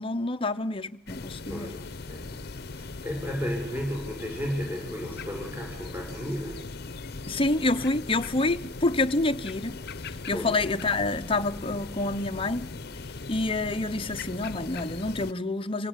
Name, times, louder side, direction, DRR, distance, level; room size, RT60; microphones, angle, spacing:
voice 1, 0.0-1.7 7.3-9.8 10.0-12.7 13.3-15.9, left 2 dB, 30° left, 0.9 m, -28 dB
sound 1, 1.1-15.3, left 3 dB, 55° left, 0.9 m, -39 dB
voice 2, 1.5-6.6 10.3-10.5, equal, 10° right, 6.2 m, -34 dB
27.5 x 17.5 x 10.0 m
head